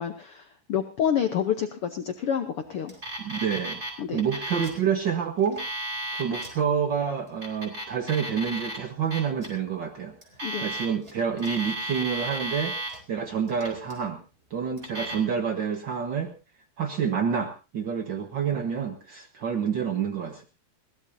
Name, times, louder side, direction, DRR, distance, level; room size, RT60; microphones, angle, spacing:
voice 1, 0.0-2.9 4.0-4.2 10.4-10.6, left 9 dB, 75° left, 6 dB, 1.3 m, -28 dB
Alarm, 2.9-3.9 4.2-4.8 5.4-6.5 7.3-8.8 9.1-9.5 10.2-11.1 11.4-13.0 13.5-14.0 14.8-15.1, right 1 dB, 20° right, 3.8 m, -34 dB
voice 2, 3.2-3.8 4.1-5.6 6.1-10.1 10.6-14.2 14.5-16.3 16.8-20.4, right 7 dB, 80° right, 5 dB, 1.0 m, -28 dB
21.5 x 17.5 x 2.8 m, 0.32 s
omnidirectional pair, 3.9 m